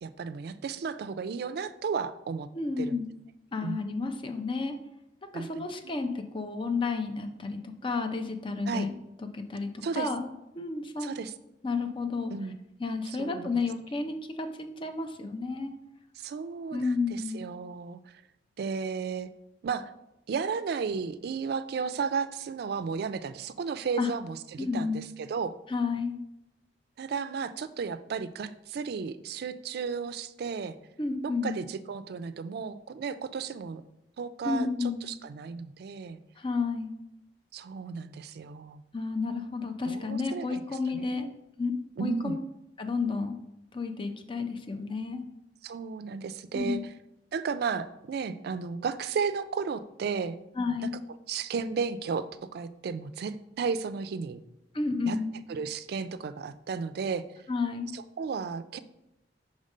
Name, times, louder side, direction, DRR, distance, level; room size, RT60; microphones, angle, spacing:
voice 1, 0.0-2.5 2.8-3.0 3.6-3.8 5.3-6.0 8.7-8.9 9.8-10.1 11.0-11.3 12.3-12.6 13.2-13.6 16.2-18.2 18.6-19.3 19.6-19.9 20.3-25.6 27.0-30.8 31.2-33.8 34.2-36.2 37.5-38.8 39.9-40.6 40.9-41.3 42.0-42.4 45.6-46.8 47.3-50.4 50.8-50.9 51.3-54.4 55.1-55.2 55.5-57.2 57.9-58.8, right 5 dB, 60° right, 14 dB, 0.3 m, -34 dB
voice 2, 2.5-3.1 3.5-4.7 5.3-8.9 9.3-11.1 11.6-12.3 12.8-15.7 16.7-17.4 24.0-24.1 24.6-25.0 25.7-26.2 31.0-31.6 34.4-35.1 36.4-36.9 38.9-41.3 41.6-41.7 42.0-42.4 42.8-43.3 43.7-45.2 46.5-46.8 50.6-51.0 54.7-55.3 57.5-57.9, left 4 dB, 30° left, 6 dB, 0.5 m, -31 dB
5.1 x 3.5 x 5.4 m, 0.88 s
head